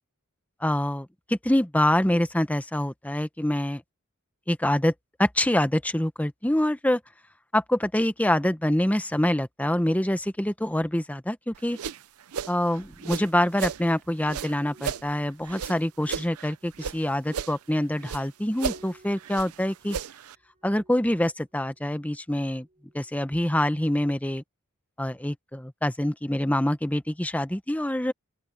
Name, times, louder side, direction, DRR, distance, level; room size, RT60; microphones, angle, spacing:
voice 1, 0.6-3.8 4.5-4.9 5.2-7.0 7.5-11.8 12.5-20.0 20.6-22.7 22.9-24.4 25.0-28.1, left 1 dB, 5° left, 0.9 m, -25 dB
sound 1, 11.5-13.8 14.2-17.0 17.3-18.3 18.5-20.4, right 7 dB, 85° right, 0.6 m, -35 dB
sound 2, 14.6-23.3 23.6-23.8, right 2 dB, 35° right, 7.4 m, -59 dB
open air
head